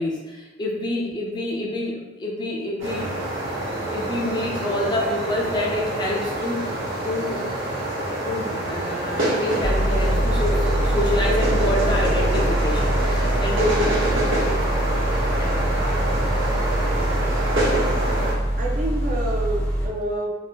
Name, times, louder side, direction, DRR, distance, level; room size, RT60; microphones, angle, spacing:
voice 1, 0.0-3.1 3.6-7.4 8.2-13.9 14.4-14.6 15.4-15.7, left 1 dB, 20° left, -3 dB, 0.4 m, -27 dB
sound 1, 2.8-18.3, right 1 dB, 70° right, 1.0 m, -26 dB
sound 2, 9.6-19.9, right 1 dB, 65° left, 0.8 m, -24 dB
voice 2, 18.6-20.4, right 1 dB, 40° right, -1 dB, 0.4 m, -28 dB
2.8 x 2.1 x 3.3 m, 1.2 s
head